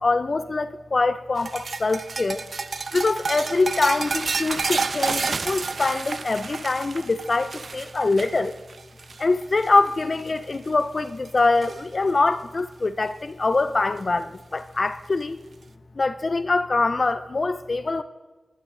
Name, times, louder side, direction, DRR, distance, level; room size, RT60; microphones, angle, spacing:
voice 1, 0.0-2.4 2.9-8.5 9.2-15.4 16.0-18.0, left 3 dB, 50° left, 12 dB, 0.4 m, -24 dB
sound 1, 1.4-9.9 10.2-10.6 11.0-11.8 13.2-13.3 14.5-14.6, right 4 dB, 70° right, 0.4 m, -30 dB
11.0 x 11.0 x 3.7 m, 1.3 s
wide cardioid pair, 75°, 0 cm